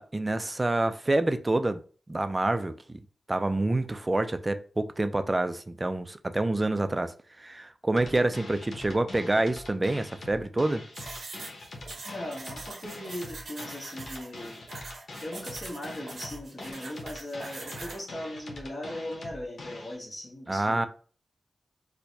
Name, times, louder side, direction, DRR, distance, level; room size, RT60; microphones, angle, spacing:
voice 1, 0.0-1.8 2.1-2.7 3.3-10.8 20.5-20.9, right 2 dB, 25° right, 0.4 m, -27 dB
sound 1, 8.0-20.0, left 2 dB, 85° left, 0.9 m, -43 dB
sound 2, 10.9-18.0, right 3 dB, 85° right, 0.8 m, -43 dB
voice 2, 12.0-14.6 15.2-20.9, left 1 dB, 45° left, 1.2 m, -39 dB
4.4 x 2.2 x 2.6 m
wide cardioid pair, 85°, 0 cm